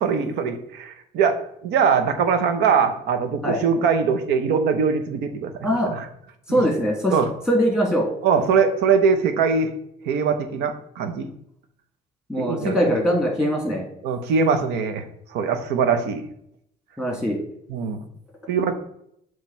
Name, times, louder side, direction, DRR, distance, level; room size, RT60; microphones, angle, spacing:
voice 1, 0.0-1.4 1.6-5.5 5.9-6.1 6.5-6.6 7.1-7.3 8.2-9.7 10.0-11.3 12.4-12.7 14.0-15.0 15.3-16.3 17.7-18.0 18.5-18.7, right 6 dB, 85° right, 9 dB, 0.7 m, -21 dB
voice 2, 6.5-7.1 7.5-8.1 12.3-13.8 17.0-17.4, equal, 5° right, 0 dB, 1.9 m, -21 dB
7.2 x 3.1 x 4.4 m, 0.72 s
cardioid pair, 110°, 17 cm